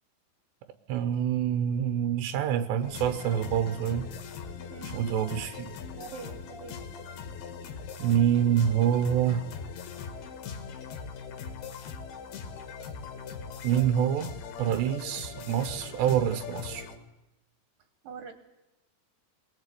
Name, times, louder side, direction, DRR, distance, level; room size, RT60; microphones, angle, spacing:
voice 1, 0.9-4.1 4.9-5.7 8.0-9.5 13.6-16.9, right 9 dB, 85° right, 10 dB, 3.2 m, -26 dB
sound 1, 2.8-17.0, left 6 dB, 70° left, 3.6 m, -40 dB
voice 2, 4.7-5.1 6.0-6.8 18.0-18.3, right 6 dB, 60° right, 8 dB, 2.8 m, -43 dB
22.5 x 20.0 x 8.4 m, 0.95 s
omnidirectional pair, 4.9 m